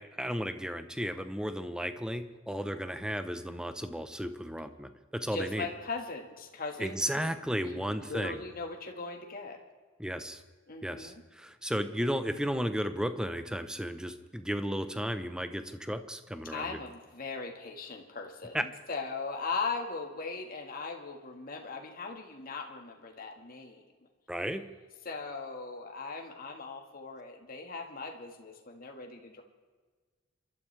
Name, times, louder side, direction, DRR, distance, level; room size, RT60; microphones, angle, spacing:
voice 1, 0.0-5.7 6.8-8.4 10.0-10.4 10.8-16.8 18.5-18.6 24.3-24.7, equal, 5° right, 9 dB, 0.8 m, -34 dB
voice 2, 5.3-7.3 7.6-9.6 10.7-11.2 16.5-23.8 25.1-29.4, left 4 dB, 45° left, 2 dB, 1.7 m, -39 dB
28.0 x 12.5 x 3.3 m, 1.4 s
head